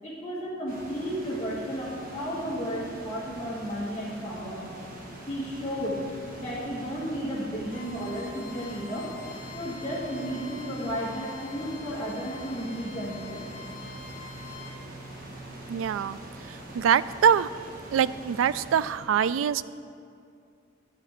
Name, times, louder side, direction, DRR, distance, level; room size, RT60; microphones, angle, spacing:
voice 1, 0.0-4.6 5.3-6.0 6.4-9.1 9.5-13.5, equal, 20° left, -9 dB, 1.7 m, -33 dB
sound 1, 0.7-18.9, right 1 dB, 45° right, 1.5 m, -43 dB
Bowed string instrument, 7.7-14.7, left 6 dB, 85° left, 1.0 m, -46 dB
voice 2, 15.7-16.2 16.5-17.5 17.9-19.6, right 8 dB, 85° right, 16 dB, 0.3 m, -24 dB
11.0 x 5.1 x 8.0 m, 2.4 s
head